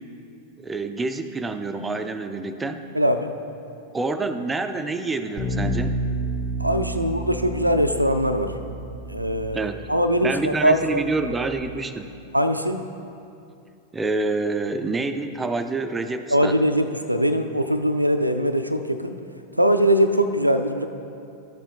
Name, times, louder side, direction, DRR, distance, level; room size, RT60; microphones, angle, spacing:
voice 1, 0.6-2.8 3.9-6.0 9.5-9.8 10.2-12.1 13.9-16.6, right 3 dB, 15° right, 8 dB, 0.4 m, -27 dB
voice 2, 2.9-3.3 6.6-8.5 9.1-11.0 12.3-12.8 16.3-19.2 19.6-20.9, equal, 90° right, 8 dB, 0.3 m, -21 dB
Bass guitar, 5.4-11.6, right 1 dB, 20° left, 1.1 m, -31 dB
12.0 x 7.2 x 2.3 m, 2.5 s
figure-of-eight pair, 90°, 0 cm